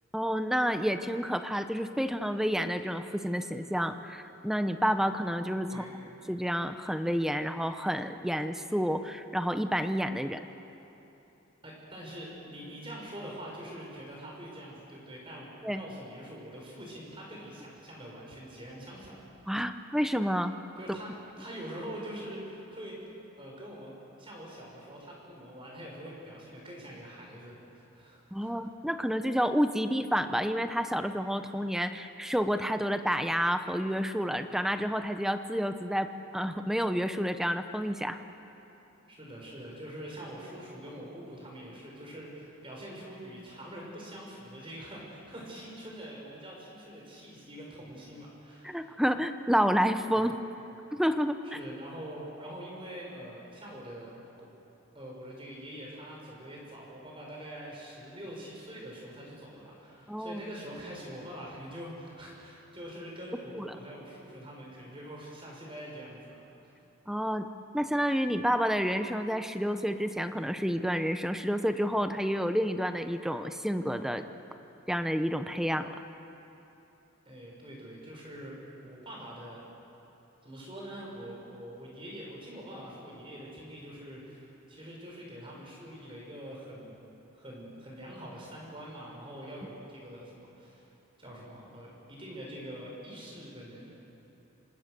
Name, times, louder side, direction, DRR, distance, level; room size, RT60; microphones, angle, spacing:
voice 1, 0.1-5.9 6.3-10.4 15.6-15.8 19.5-20.5 28.3-36.1 36.3-38.2 48.6-50.4 50.9-51.6 60.1-60.4 63.5-63.8 67.1-67.5 67.7-74.3 74.9-75.9, equal, ahead, 8 dB, 0.8 m, -29 dB
voice 2, 5.7-6.0 11.6-19.2 20.8-23.9 24.2-28.5 39.0-49.0 50.1-50.2 51.4-54.2 54.9-66.7 77.2-79.6 80.4-87.0 87.3-90.9 91.2-93.9, equal, 25° right, -2 dB, 6.6 m, -44 dB
26.5 x 26.0 x 6.9 m, 3.0 s
head